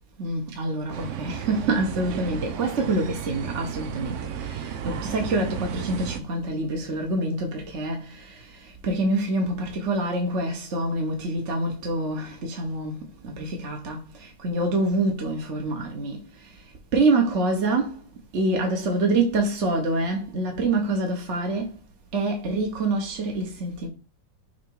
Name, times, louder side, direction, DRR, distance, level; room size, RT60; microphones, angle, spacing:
voice 1, 0.2-16.5 16.9-18.0 18.3-21.7 22.1-23.9, right 2 dB, 45° right, 1.3 m, -26 dB
sound 1, 0.9-6.2, right 8 dB, 70° right, 0.7 m, -33 dB
6.0 x 3.4 x 4.7 m
omnidirectional pair, 2.0 m